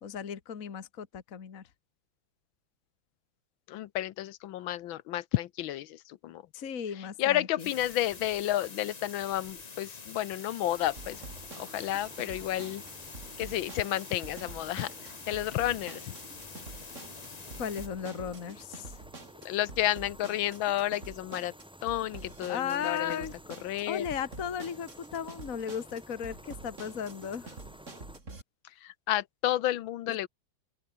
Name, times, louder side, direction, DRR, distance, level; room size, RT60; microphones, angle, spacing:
voice 1, 0.0-1.6 6.5-7.7 17.6-19.0 22.5-23.3 23.9-27.5 30.1-30.3, left 7 dB, 45° left, 1.8 m, -36 dB
voice 2, 3.7-6.4 7.2-11.2 11.5-12.8 13.4-16.1 19.5-21.5 21.8-23.3 23.6-24.1 28.8-30.3, left 13 dB, 85° left, 1.6 m, -31 dB
sound 1, 7.6-17.9, left 5 dB, 30° left, 0.8 m, -46 dB
sound 2, 10.6-28.2, equal, ahead, 3.9 m, -52 dB
sound 3, 11.0-28.4, right 3 dB, 40° right, 4.0 m, -47 dB
open air
omnidirectional pair, 2.1 m